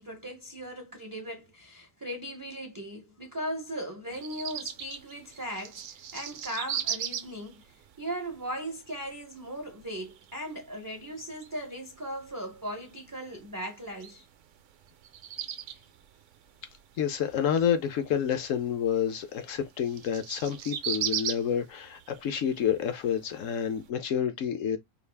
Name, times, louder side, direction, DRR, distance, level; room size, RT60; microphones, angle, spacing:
voice 1, 0.0-14.3 18.3-18.4, equal, 25° right, 0.4 m, -38 dB
sound 1, 4.1-23.9, right 9 dB, 65° right, 0.8 m, -40 dB
voice 2, 17.0-24.8, left 8 dB, 65° left, 1.0 m, -29 dB
4.7 x 2.4 x 3.3 m
omnidirectional pair, 1.6 m